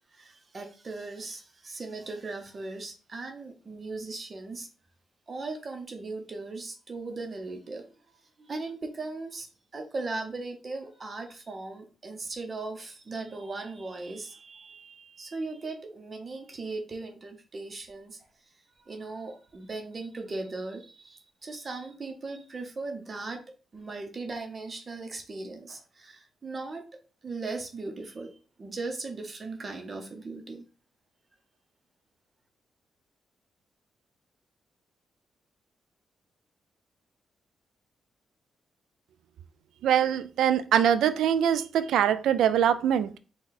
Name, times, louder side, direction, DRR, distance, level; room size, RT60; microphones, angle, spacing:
voice 1, 0.1-4.7 5.3-7.9 8.4-18.2 18.8-23.4 23.7-26.8 27.2-28.3 28.6-30.6, right 3 dB, 40° right, 0.8 m, -38 dB
voice 2, 39.8-43.2, right 9 dB, 85° right, 0.3 m, -23 dB
4.1 x 2.3 x 3.9 m
cardioid pair, 75°, 0 cm